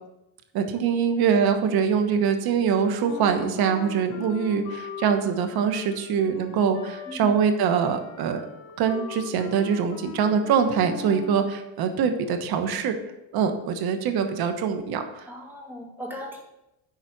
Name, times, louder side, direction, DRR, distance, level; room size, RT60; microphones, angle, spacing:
voice 1, 0.5-8.4 8.8-12.9 13.3-15.3, right 7 dB, 60° right, 7 dB, 1.3 m, -24 dB
Wind instrument woodwind instrument, 3.0-11.4, left 7 dB, 75° left, 1.4 m, -40 dB
voice 2, 15.3-16.4, left 1 dB, 5° right, -1 dB, 2.3 m, -37 dB
11.0 x 4.2 x 5.9 m, 0.90 s
cardioid pair, 115°, 42 cm